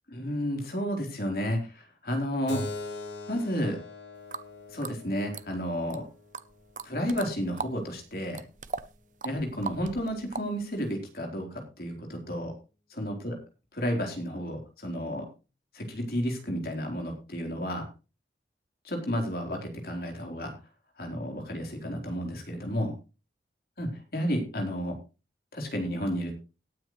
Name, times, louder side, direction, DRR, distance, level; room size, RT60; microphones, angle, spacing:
voice 1, 0.1-2.7 3.3-3.8 4.7-6.0 6.8-8.4 9.2-12.5 12.9-13.4 13.7-15.3 15.7-17.9 18.8-20.5 21.0-22.9 23.8-25.0 25.5-26.3, equal, 55° left, 2 dB, 4.0 m, -32 dB
Keyboard (musical), 2.5-7.6, left 2 dB, 85° left, 3.7 m, -42 dB
sound 1, 4.3-4.5 4.8-6.0 6.3-7.8 8.1-10.9, right 4 dB, 45° right, 0.7 m, -39 dB
17.5 x 9.6 x 3.2 m, 0.31 s
head